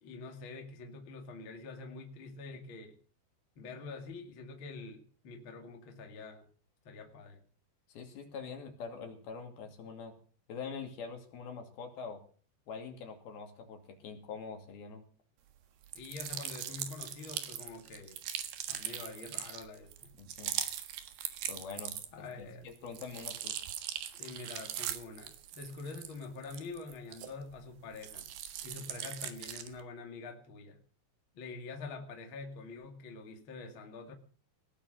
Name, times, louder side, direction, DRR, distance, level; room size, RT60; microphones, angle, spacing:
voice 1, 0.0-2.9 3.6-6.5 6.8-7.4 15.9-18.2 18.7-19.9 22.1-22.7 24.1-28.3 28.6-30.8 31.3-34.1, left 3 dB, 35° left, 4 dB, 2.4 m, -46 dB
voice 2, 7.9-10.2 10.5-12.2 12.7-15.0 20.1-20.5 21.5-22.0 22.4-23.6, left 5 dB, 60° left, 5 dB, 4.2 m, -44 dB
sound 1, 15.8-22.3 22.7-27.6 27.9-29.8, right 10 dB, 65° right, 3.3 m, -40 dB
19.0 x 9.5 x 6.4 m, 0.42 s
omnidirectional pair, 5.1 m